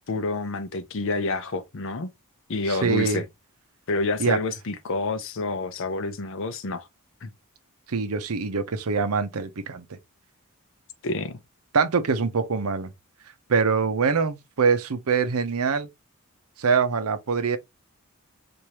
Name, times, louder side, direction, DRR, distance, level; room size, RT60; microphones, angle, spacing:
voice 1, 0.0-2.1 2.5-3.2 3.9-6.9 7.2-7.3 11.0-11.4, left 3 dB, 60° left, 0.6 m, -28 dB
voice 2, 2.7-3.2 4.2-4.4 7.9-10.0 11.7-12.9 13.5-15.9 16.6-17.6, right 5 dB, 75° right, 0.7 m, -24 dB
4.7 x 2.6 x 2.9 m
head